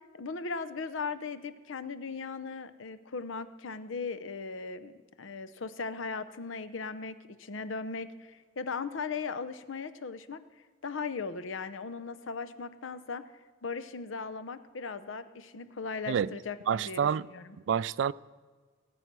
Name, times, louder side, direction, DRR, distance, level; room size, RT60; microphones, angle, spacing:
voice 1, 0.1-10.4 10.8-13.3 13.6-17.6, left 4 dB, 75° left, 0.7 m, -38 dB
voice 2, 16.7-17.3 17.7-18.1, right 7 dB, 65° right, 0.3 m, -28 dB
18.5 x 7.9 x 6.1 m
head